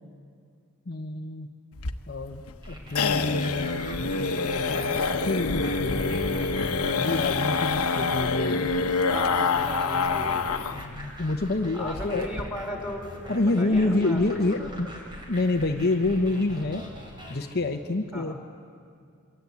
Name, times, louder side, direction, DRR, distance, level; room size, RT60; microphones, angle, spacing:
voice 1, 0.9-1.5 2.1-8.7 10.7-12.3 13.3-14.9 15.3-16.8 17.3-18.3, left 2 dB, 45° left, 4 dB, 0.9 m, -28 dB
sound 1, 1.8-10.9 11.1-11.2 11.6-11.7 12.0-12.4, left 4 dB, 80° left, 1.1 m, -26 dB
sound 2, 2.6-17.4, equal, 20° right, 4.3 m, -42 dB
voice 2, 9.1-10.6 11.7-13.1 13.6-14.7 18.1-18.3, left 1 dB, 5° right, 1 dB, 3.9 m, -36 dB
27.5 x 23.0 x 8.4 m, 2.3 s
head